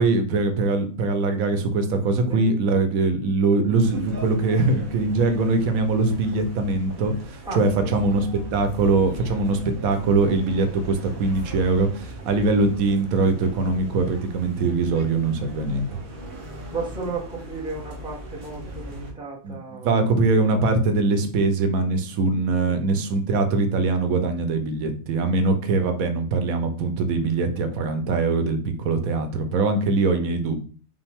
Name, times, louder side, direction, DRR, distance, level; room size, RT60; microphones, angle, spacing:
voice 1, 0.0-15.9 19.4-19.6 19.8-30.6, right 3 dB, 85° right, 7 dB, 1.2 m, -22 dB
sound 1, 3.8-19.1, right 1 dB, 45° right, 1.0 m, -39 dB
voice 2, 7.4-8.2 16.7-20.0 22.7-22.9, right 3 dB, 5° right, -4 dB, 1.0 m, -34 dB
5.3 x 2.6 x 3.4 m, 0.41 s
omnidirectional pair, 1.4 m